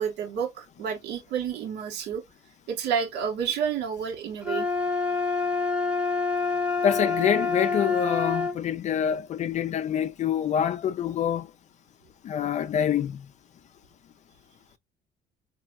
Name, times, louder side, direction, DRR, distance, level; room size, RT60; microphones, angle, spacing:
voice 1, 0.0-2.2 2.7-4.7, right 7 dB, 85° right, 1.3 m, -30 dB
sound 1, 4.4-8.6, left 4 dB, 5° right, 0.8 m, -27 dB
voice 2, 6.8-11.5 12.2-13.2, left 9 dB, 45° left, 0.4 m, -26 dB
4.2 x 2.7 x 2.4 m
cardioid pair, 110°, 17 cm